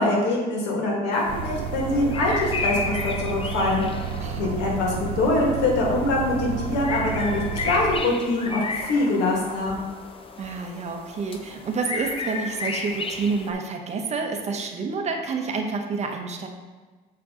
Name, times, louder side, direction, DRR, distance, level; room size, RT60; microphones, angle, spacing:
voice 1, 0.0-3.8 4.4-9.8, left 2 dB, 90° left, -1 dB, 1.8 m, -24 dB
sound 1, 1.1-13.5, left 3 dB, 30° left, 0.7 m, -34 dB
sound 2, 1.3-8.0, right 6 dB, 75° right, 1.0 m, -31 dB
voice 2, 4.2-4.6 10.4-16.5, right 4 dB, 40° right, 3 dB, 0.9 m, -29 dB
7.5 x 4.5 x 3.7 m, 1.3 s
cardioid pair, 110°, 17 cm